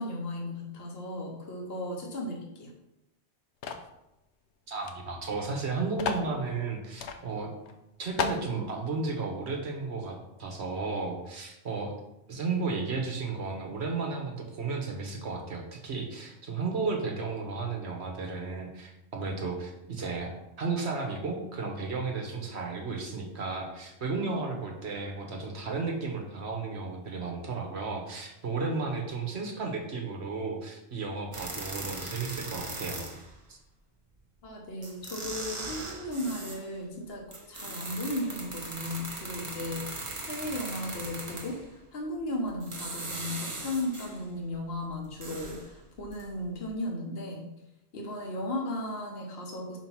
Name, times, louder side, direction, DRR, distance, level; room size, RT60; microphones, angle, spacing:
voice 1, 0.0-2.7 34.4-37.2 37.5-41.6 41.9-47.5 47.9-49.8, left 1 dB, 60° left, 0 dB, 1.3 m, -35 dB
sound 1, 3.6-3.9 4.8-4.9 5.2-5.3 6.0-6.3 7.0-7.2 7.6-7.7 8.2-8.5, left 5 dB, 85° left, 1.0 m, -32 dB
voice 2, 4.7-7.5 8.0-11.9 12.3-20.3 20.6-33.0 33.5-33.6, right 4 dB, 75° right, 2 dB, 1.4 m, -33 dB
sound 2, 31.3-33.3 34.4-34.5 34.8-36.7 37.3-41.7 42.5-44.2 44.7-46.3 46.6-46.7, right 2 dB, 30° right, 0.9 m, -39 dB
5.0 x 4.6 x 5.7 m, 0.89 s
omnidirectional pair, 1.1 m